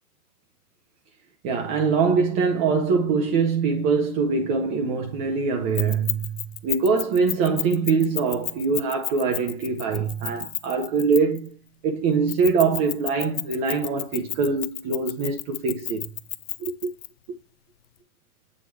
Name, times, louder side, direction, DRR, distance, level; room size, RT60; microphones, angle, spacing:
voice 1, 1.4-11.5 11.8-16.1 16.6-16.9, right 5 dB, 25° right, 0.7 m, -23 dB
Keys jangling, 5.8-11.5 12.3-17.1, left 13 dB, 40° left, 0.6 m, -32 dB
8.5 x 3.0 x 4.6 m
hypercardioid pair, 130°, 45 cm